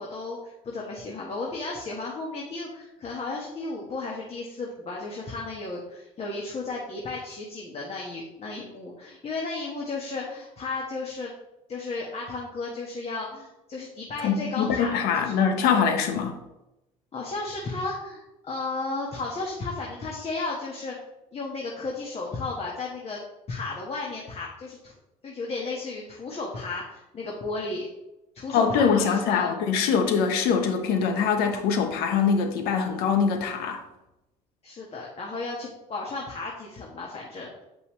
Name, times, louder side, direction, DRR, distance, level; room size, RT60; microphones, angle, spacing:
voice 1, 0.0-11.3 11.7-15.4 17.1-21.0 21.3-24.9 25.2-27.9 28.3-29.6 34.6-37.6, left 3 dB, 35° left, -2 dB, 1.7 m, -34 dB
voice 2, 14.2-16.4 28.5-33.8, left 6 dB, 70° left, 5 dB, 1.1 m, -23 dB
8.5 x 5.3 x 3.3 m, 0.94 s
hypercardioid pair, 75°, 17 cm